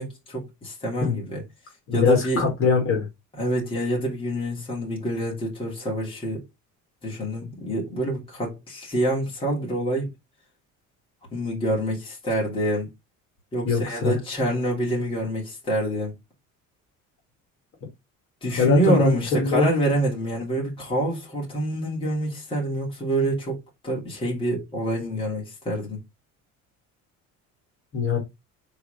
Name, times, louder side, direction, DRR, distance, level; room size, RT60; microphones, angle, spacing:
voice 1, 0.0-1.4 1.9-2.4 3.3-6.4 7.0-10.1 11.3-12.9 13.5-16.1 18.4-26.0, right 1 dB, 15° left, 2.9 m, -26 dB
voice 2, 1.9-3.1 13.6-14.2 18.6-19.7 27.9-28.2, left 5 dB, 45° left, 2.4 m, -22 dB
4.7 x 4.2 x 5.1 m
cardioid pair, 180°, 31 cm